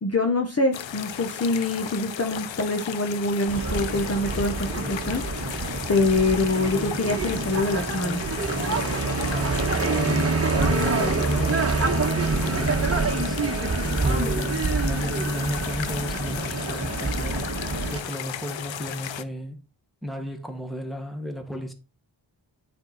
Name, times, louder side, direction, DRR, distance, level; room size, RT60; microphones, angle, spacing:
voice 1, 0.0-5.6 5.9-8.2, left 2 dB, 35° left, 1.0 m, -25 dB
sound 1, 0.7-19.2, left 9 dB, 80° left, 0.7 m, -35 dB
sound 2, 3.5-18.0, right 3 dB, 30° right, 1.3 m, -26 dB
voice 2, 9.3-13.4 14.0-17.4 17.9-19.6 20.0-21.7, equal, ahead, 1.5 m, -33 dB
8.8 x 4.4 x 4.1 m
wide cardioid pair, 90°, 45 cm